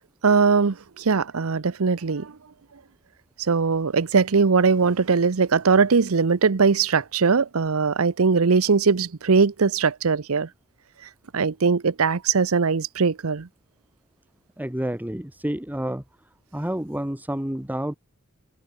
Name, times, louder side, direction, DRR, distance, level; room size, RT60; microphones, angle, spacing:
voice 1, 0.2-2.3 3.4-10.5 11.3-13.5, right 5 dB, 85° right, 0.7 m, -20 dB
voice 2, 14.6-16.0 16.5-18.0, right 1 dB, 10° right, 1.2 m, -29 dB
head